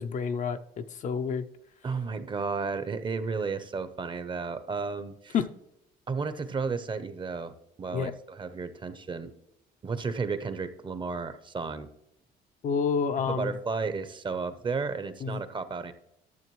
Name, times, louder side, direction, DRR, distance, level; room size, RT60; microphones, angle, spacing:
voice 1, 0.0-1.5 5.3-5.5 7.9-8.1 12.6-13.5 15.2-15.4, left 6 dB, 50° left, 9 dB, 0.5 m, -29 dB
voice 2, 1.8-5.3 6.1-7.5 7.8-9.3 9.8-11.9 13.3-15.9, right 4 dB, 30° right, 12 dB, 0.7 m, -33 dB
12.0 x 6.7 x 3.1 m, 0.81 s
cardioid pair, 110°, 17 cm